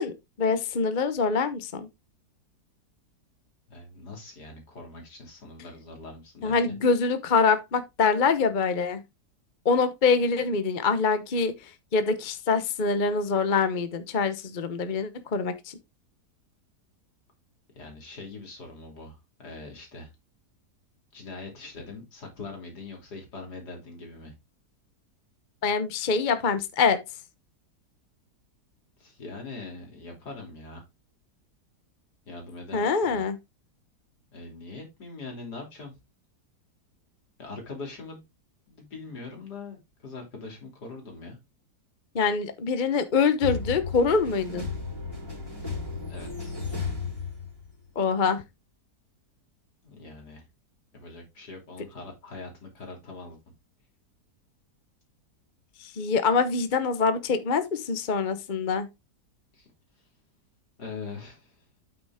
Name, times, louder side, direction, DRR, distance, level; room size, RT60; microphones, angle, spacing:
voice 1, 0.0-1.9 6.4-9.0 9.6-15.8 25.6-27.0 32.7-33.4 42.1-44.6 48.0-48.4 55.8-58.9, left 5 dB, 35° left, 0.8 m, -25 dB
voice 2, 3.7-6.8 17.7-20.1 21.1-24.3 29.0-30.8 32.3-33.2 34.3-36.0 37.4-38.2 38.7-41.4 46.0-46.6 49.8-50.5 50.9-53.4 59.5-59.7 60.8-61.6, left 3 dB, 70° left, 3.6 m, -42 dB
sound 1, 43.4-47.9, left 4 dB, 15° left, 3.5 m, -34 dB
9.0 x 5.9 x 3.5 m
omnidirectional pair, 1.8 m